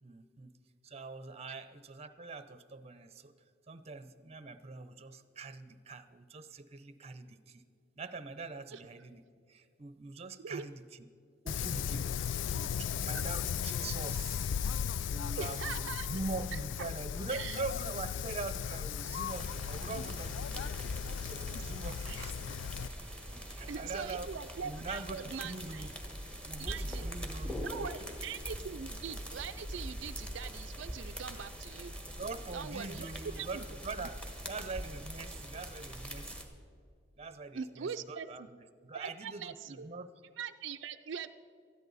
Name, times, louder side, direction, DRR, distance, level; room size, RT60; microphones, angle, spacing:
voice 1, 0.0-0.5 0.8-3.3 3.7-7.6 8.0-9.2 9.5-10.8 11.4-12.1 12.5-14.5 15.1-22.5 23.3-24.3 24.6-25.9 26.4-27.9 32.2-34.2 34.5-36.5 37.2-40.1, right 3 dB, 35° right, 12 dB, 0.7 m, -43 dB
Wind, 11.5-22.9, left 8 dB, 75° left, 0.3 m, -36 dB
voice 2, 15.4-16.1 16.5-16.9 17.3-17.6 22.0-22.3 23.7-25.9 26.6-27.1 27.6-32.0 32.5-33.6 37.5-38.5 38.9-39.9 40.4-41.3, right 6 dB, 75° right, 8 dB, 0.4 m, -42 dB
sound 1, 19.3-36.4, equal, 5° left, 1.4 m, -43 dB
19.5 x 13.5 x 4.1 m, 2.4 s
head